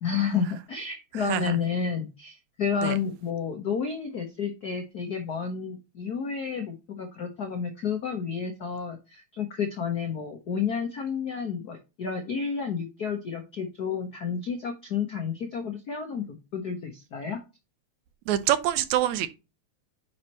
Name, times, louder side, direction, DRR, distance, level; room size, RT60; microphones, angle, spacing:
voice 1, 0.0-17.4, left 6 dB, 75° left, 0.8 m, -31 dB
voice 2, 18.3-19.3, right 12 dB, 80° right, 2.1 m, -25 dB
9.3 x 4.5 x 2.9 m
omnidirectional pair, 3.3 m